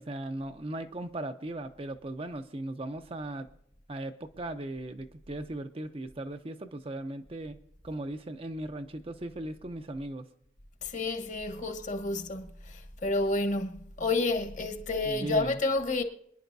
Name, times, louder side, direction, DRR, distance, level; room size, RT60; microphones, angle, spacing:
voice 1, 0.0-3.5 3.9-7.6 7.8-10.3 15.0-15.6, right 1 dB, 30° right, 0.6 m, -38 dB
voice 2, 10.8-16.0, left 2 dB, 40° left, 1.2 m, -30 dB
26.0 x 10.5 x 2.7 m
head